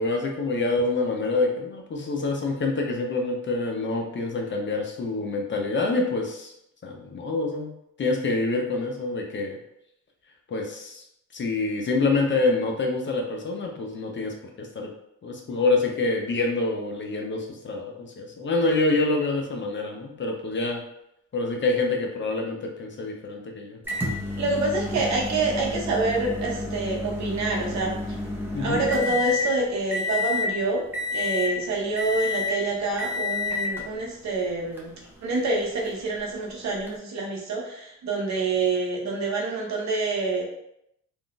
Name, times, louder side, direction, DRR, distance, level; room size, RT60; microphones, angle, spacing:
voice 1, 0.0-6.5 6.8-7.7 8.0-9.6 10.5-11.0 11.3-14.9 15.2-20.8 21.3-23.8 28.5-28.8, left 3 dB, 40° left, 1 dB, 0.7 m, -26 dB
Microwave oven, 23.9-29.5 29.9-30.5 30.9-31.6 32.0-32.6 33.0-33.8 34.8-34.9 36.9-37.0, left 3 dB, 5° right, 0.7 m, -29 dB
voice 2, 24.4-28.2 28.6-30.8 31.1-34.9 35.2-40.4, right 3 dB, 65° right, -1 dB, 0.9 m, -27 dB
3.5 x 2.5 x 2.3 m, 0.77 s
cardioid pair, 90°, 30 cm